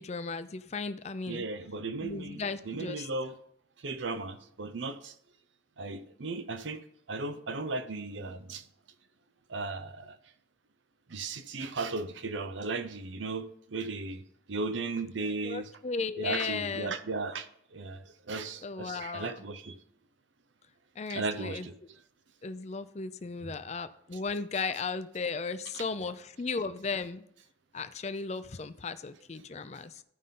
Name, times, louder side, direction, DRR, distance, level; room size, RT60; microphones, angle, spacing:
voice 1, 0.0-1.4 2.0-3.1 15.4-16.9 18.6-19.3 21.0-21.7 22.4-27.2 27.7-29.9, left 4 dB, 35° left, 0.5 m, -35 dB
voice 2, 1.3-3.3 3.8-5.1 5.8-6.8 7.1-8.6 9.5-10.2 11.1-14.2 14.5-15.7 16.2-19.8 21.1-21.7 23.4-23.5 25.7-25.8, right 3 dB, 85° right, 0.7 m, -36 dB
13.5 x 5.3 x 3.7 m
head